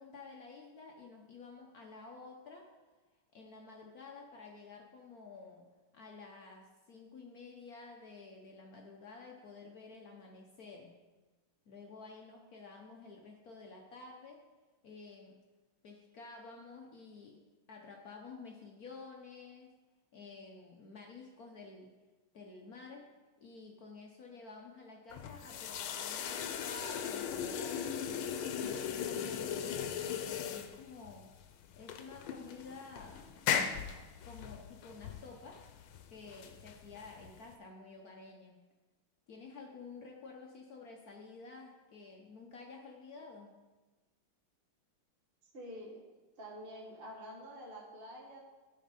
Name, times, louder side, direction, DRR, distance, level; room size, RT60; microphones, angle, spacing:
voice 1, 0.0-2.7 3.3-5.7 5.9-10.9 11.7-14.4 14.8-15.3 15.8-17.4 17.7-19.7 20.1-21.9 22.3-23.1 23.4-28.3 28.6-31.3 31.8-33.3 34.2-35.6 36.1-38.6 39.3-43.6, left 4 dB, 55° left, 1 dB, 1.1 m, -51 dB
sound 1, 25.1-37.5, left 8 dB, 85° left, 1.5 m, -38 dB
voice 2, 45.5-46.0 46.4-48.4, equal, 30° right, -2 dB, 1.4 m, -47 dB
13.0 x 4.3 x 5.2 m, 1.2 s
omnidirectional pair, 2.2 m